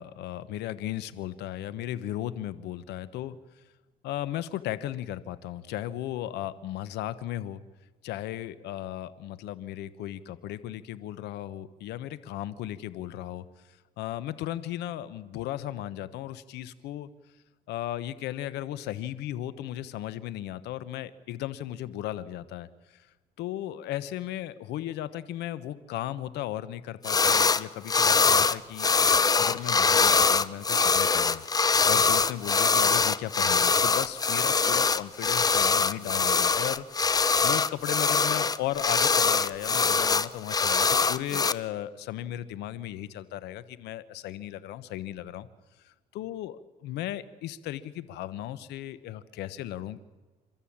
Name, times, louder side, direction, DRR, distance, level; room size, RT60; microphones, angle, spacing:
voice 1, 0.0-3.4 4.0-7.6 8.0-13.4 14.0-17.1 17.7-23.1 23.4-28.9 29.4-31.4 31.9-45.5 45.8-50.0, left 13 dB, 85° left, 15 dB, 1.1 m, -36 dB
sound 1, 27.0-27.6 27.9-41.5, left 5 dB, 20° left, 0.7 m, -23 dB
29.0 x 13.0 x 8.7 m, 1.3 s
cardioid pair, 110°, 17 cm